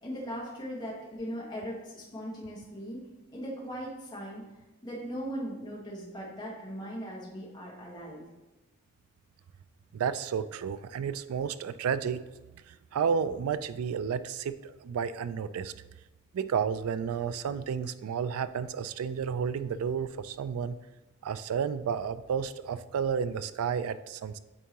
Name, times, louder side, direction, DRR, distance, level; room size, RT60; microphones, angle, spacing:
voice 1, 0.0-3.0 3.3-4.4 4.8-8.2, equal, 20° left, -5 dB, 1.4 m, -39 dB
voice 2, 9.9-12.2 12.7-15.7 16.3-20.8 21.2-24.4, right 7 dB, 80° right, 14 dB, 0.3 m, -31 dB
8.9 x 3.7 x 2.9 m, 1.1 s
head